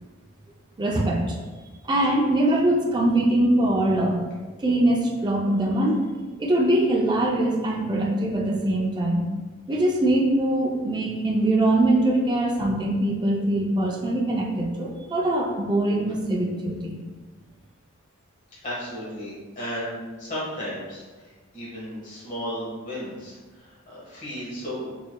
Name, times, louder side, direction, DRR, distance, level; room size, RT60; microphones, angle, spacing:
voice 1, 0.8-1.4 1.8-4.2 4.6-6.0 6.4-9.3 9.7-16.9, right 1 dB, 20° right, -2 dB, 0.4 m, -22 dB
voice 2, 18.6-24.9, equal, 35° left, -7 dB, 1.3 m, -34 dB
4.9 x 3.9 x 2.2 m, 1.3 s
head